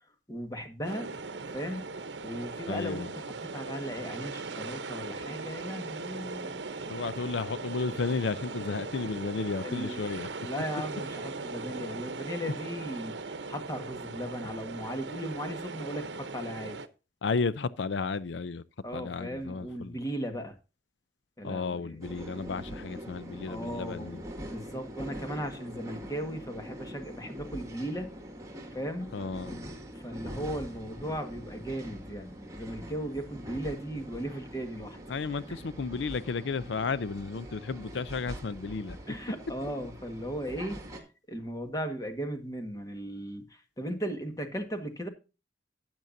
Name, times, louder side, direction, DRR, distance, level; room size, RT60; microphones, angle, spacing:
voice 1, 0.3-1.1 1.5-2.0 2.2-3.3 3.5-6.7 9.6-10.0 10.4-16.8 18.8-20.6 21.4-22.0 23.5-28.1 28.7-29.2 29.9-35.0 39.1-40.8 41.3-45.1, equal, 20° left, 1.6 m, -37 dB
sound 1, 0.8-16.9, right 3 dB, 70° right, 0.9 m, -39 dB
voice 2, 2.7-3.1 6.9-10.3 17.2-18.6 18.9-20.0 21.4-24.2 29.1-29.6 35.1-39.0, left 4 dB, 80° left, 0.5 m, -33 dB
sound 2, 22.0-41.0, equal, 20° right, 2.2 m, -43 dB
12.0 x 8.8 x 2.7 m
head